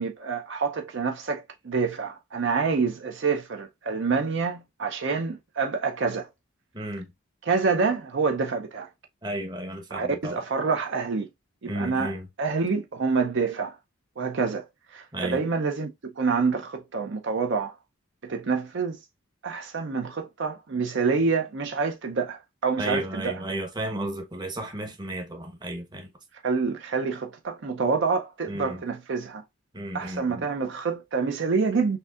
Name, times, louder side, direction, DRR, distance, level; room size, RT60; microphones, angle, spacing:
voice 1, 0.0-6.3 7.5-8.9 9.9-11.3 11.6-12.1 12.4-13.7 14.2-14.6 14.9-15.9 16.2-17.8 18.2-19.0 19.4-23.4 26.4-29.4 29.9-32.0, right 4 dB, 55° right, 0.5 m, -27 dB
voice 2, 6.7-7.1 9.2-10.4 11.6-12.3 15.1-15.4 22.8-26.1 28.5-28.8 29.7-30.4, right 1 dB, 20° right, 0.9 m, -33 dB
6.5 x 2.7 x 2.4 m
head